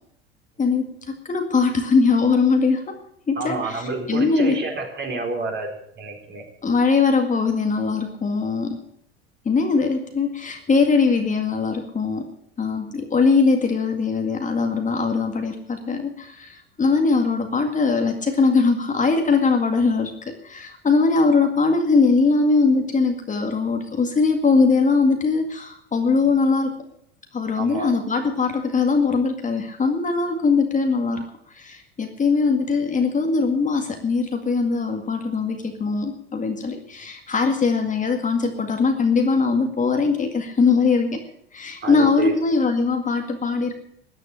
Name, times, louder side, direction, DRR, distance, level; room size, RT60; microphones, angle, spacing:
voice 1, 0.6-3.0 3.3-4.6 6.6-8.8 9.5-12.3 12.6-26.7 27.3-31.2 31.5-41.2 41.5-43.7, left 4 dB, 25° left, 4 dB, 2.0 m, -21 dB
voice 2, 3.4-6.4 27.6-27.9 41.8-42.3, right 3 dB, 35° right, 2 dB, 4.5 m, -29 dB
14.0 x 9.5 x 8.6 m, 0.72 s
hypercardioid pair, 80°, 31 cm